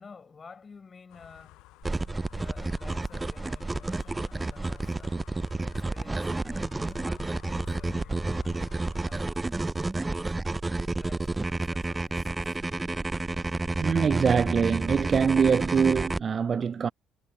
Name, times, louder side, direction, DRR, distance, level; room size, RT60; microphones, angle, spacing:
voice 1, 0.0-1.6 2.1-5.3 5.6-8.5 8.9-9.4 10.8-12.6, left 5 dB, 35° left, 5.5 m, -52 dB
sound 1, 1.1-9.1, left 20 dB, 70° left, 0.6 m, -51 dB
sound 2, 1.8-16.2, right 2 dB, 20° right, 0.7 m, -30 dB
voice 2, 13.8-16.9, right 6 dB, 45° right, 0.3 m, -24 dB
hypercardioid pair, 50°, 0 cm